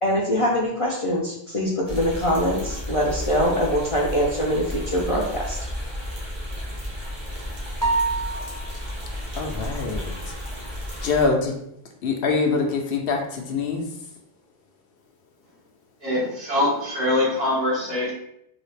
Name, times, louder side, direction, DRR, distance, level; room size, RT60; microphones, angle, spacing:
voice 1, 0.0-5.6, equal, 40° left, -3 dB, 0.5 m, -23 dB
sound 1, 1.9-11.3, equal, 55° right, 1.2 m, -33 dB
sound 2, 7.8-8.9, right 3 dB, 20° right, 0.8 m, -25 dB
voice 2, 9.3-10.1 11.0-11.5 12.0-13.8, left 4 dB, 70° left, 2 dB, 0.8 m, -24 dB
voice 3, 16.0-18.1, left 1 dB, 70° right, -6 dB, 1.7 m, -23 dB
3.9 x 2.4 x 3.2 m, 0.76 s
omnidirectional pair, 1.0 m